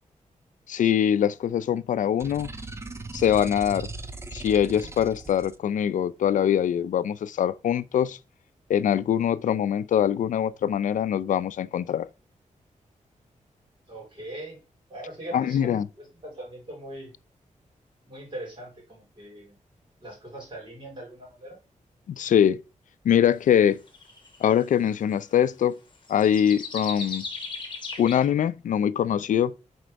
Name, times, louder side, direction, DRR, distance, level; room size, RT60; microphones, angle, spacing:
voice 1, 0.7-2.5 3.1-3.9 4.3-8.2 8.7-12.1 15.3-15.9 22.1-22.6 23.0-23.8 24.4-25.8 26.1-27.2 28.0-29.5, left 9 dB, 75° left, 0.4 m, -23 dB
sound 1, 2.2-5.6, right 2 dB, 20° right, 0.5 m, -39 dB
voice 2, 13.9-14.6 14.9-17.1 18.1-19.6 20.0-21.6, right 1 dB, 40° right, 3.8 m, -41 dB
sound 2, 23.9-24.5 26.1-28.3, left 4 dB, 40° left, 1.2 m, -36 dB
4.4 x 4.3 x 5.1 m
wide cardioid pair, 140°, 13 cm